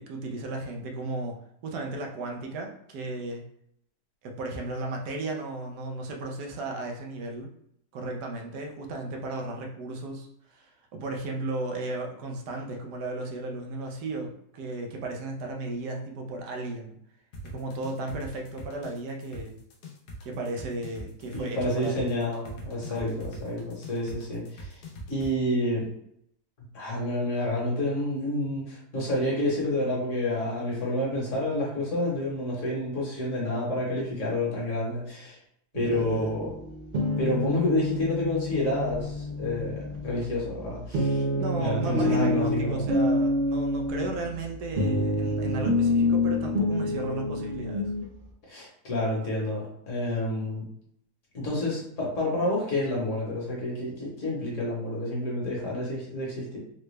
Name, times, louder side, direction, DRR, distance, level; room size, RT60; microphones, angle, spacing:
voice 1, 0.0-1.4 1.6-3.4 4.2-7.5 7.9-17.0 17.4-19.6 20.2-22.2 22.9-23.1 35.7-36.3 41.3-47.9, right 2 dB, 90° right, 2 dB, 1.2 m, -35 dB
sound 1, 17.3-25.3, equal, 85° left, 1.3 m, -41 dB
voice 2, 21.3-24.8 25.1-25.9 26.7-35.4 35.7-36.5 37.2-41.2 41.5-42.9 48.5-50.6 51.3-56.6, left 1 dB, 55° left, -4 dB, 1.4 m, -29 dB
sound 2, 35.8-48.1, left 1 dB, 75° right, 0.5 m, -28 dB
3.8 x 2.2 x 3.1 m, 0.73 s
omnidirectional pair, 1.7 m